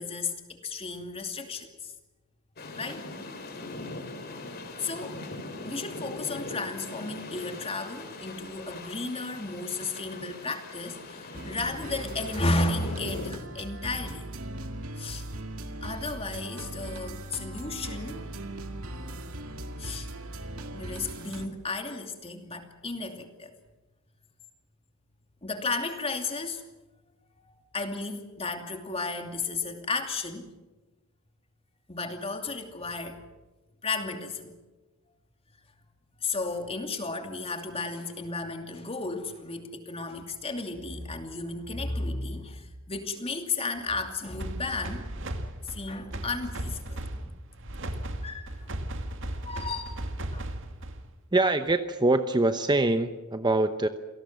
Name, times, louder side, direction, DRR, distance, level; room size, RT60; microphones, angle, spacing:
voice 1, 0.0-1.9 2.8-3.0 4.8-5.2 5.6-14.2 15.0-15.2 15.8-18.3 19.8-20.1 20.7-23.5 25.4-26.6 27.4-30.5 31.9-33.2 33.8-34.5 36.2-45.1 45.6-47.3 48.2-48.7 49.4-50.0 50.3-50.5, left 3 dB, 25° left, 5 dB, 2.7 m, -34 dB
sound 1, 2.6-13.3, left 2 dB, 45° left, 3.8 m, -41 dB
sound 2, 11.3-21.5, right 1 dB, 75° right, 2.2 m, -39 dB
sound 3, 44.4-51.2, right 1 dB, 60° right, 2.2 m, -36 dB
voice 2, 51.3-53.9, right 2 dB, 20° right, 9 dB, 0.9 m, -24 dB
27.5 x 18.0 x 7.5 m, 1.1 s
head